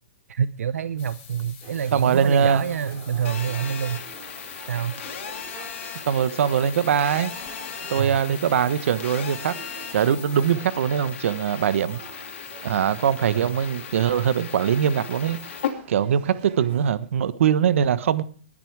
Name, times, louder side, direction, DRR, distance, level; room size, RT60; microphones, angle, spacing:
voice 1, 0.3-4.1 4.7-5.0 8.0-8.2 13.3-13.5, right 8 dB, 90° right, 0.7 m, -27 dB
sound 1, 1.0-10.5, left 8 dB, 40° left, 6.9 m, -47 dB
sound 2, 1.6-16.9, right 8 dB, 40° right, 3.0 m, -46 dB
voice 2, 1.9-2.6 6.1-7.3 7.9-9.5 9.9-12.0 12.6-15.4 15.9-18.2, right 8 dB, 65° right, 1.2 m, -22 dB
Telephone, 3.2-15.7, left 8 dB, 60° left, 2.9 m, -37 dB
19.5 x 10.5 x 4.8 m
hypercardioid pair, 160°, 8 cm